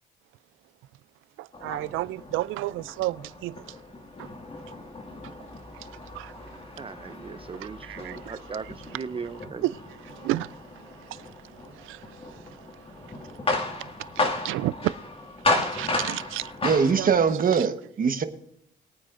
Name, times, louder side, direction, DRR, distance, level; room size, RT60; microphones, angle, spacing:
voice 1, 1.4-3.8 4.2-4.3 5.7-5.9 6.1-6.6 7.8-8.3 9.6-9.7 10.1-13.4 13.8-14.9 15.6-16.5 17.0-17.1 17.5-17.7, right 16 dB, 90° right, 0.4 m, -33 dB
sound 1, 1.5-17.3, left 2 dB, 30° left, 2.2 m, -34 dB
voice 2, 6.8-9.6, right 5 dB, 25° right, 0.6 m, -38 dB
voice 3, 16.6-18.2, right 6 dB, 45° right, 1.2 m, -22 dB
21.5 x 9.2 x 2.6 m
cardioid pair, 90°, 20 cm